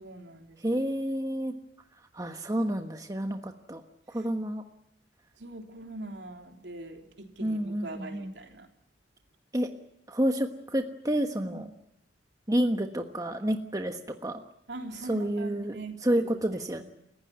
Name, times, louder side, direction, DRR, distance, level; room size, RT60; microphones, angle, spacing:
voice 1, 0.0-0.8 5.4-8.7 11.4-11.6 14.7-16.8, right 2 dB, 70° right, 4 dB, 3.5 m, -42 dB
voice 2, 0.6-1.5 2.1-3.8 4.1-4.6 7.4-8.3 9.5-9.7 10.1-11.7 12.5-14.4 15.0-16.8, right 1 dB, 20° right, 6 dB, 1.3 m, -29 dB
30.0 x 15.5 x 9.4 m, 0.80 s
head